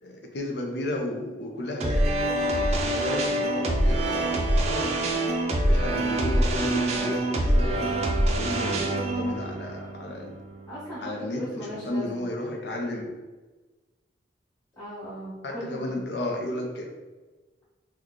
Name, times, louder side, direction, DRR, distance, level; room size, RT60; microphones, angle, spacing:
voice 1, 0.0-5.0 5.6-8.0 8.4-10.3 11.0-13.2 15.4-16.9, left 1 dB, 75° left, 1 dB, 0.6 m, -33 dB
sound 1, 1.8-11.0, right 1 dB, 35° right, 0.4 m, -25 dB
voice 2, 8.5-8.8 10.6-12.3 14.7-16.0, equal, 15° left, -14 dB, 1.2 m, -38 dB
3.1 x 2.3 x 3.7 m, 1.2 s
head